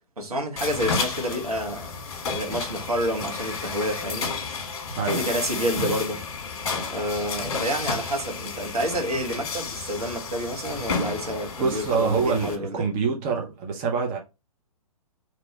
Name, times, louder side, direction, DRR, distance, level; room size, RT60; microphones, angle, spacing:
voice 1, 0.2-2.0 2.2-4.3 5.1-6.2 6.9-12.9, equal, 75° right, 1.5 m, -29 dB
sound 1, 0.6-12.6, left 5 dB, 45° left, 1.2 m, -32 dB
voice 2, 11.6-14.2, right 5 dB, 30° right, 0.9 m, -25 dB
3.0 x 3.0 x 4.1 m
figure-of-eight pair, 120°, 19 cm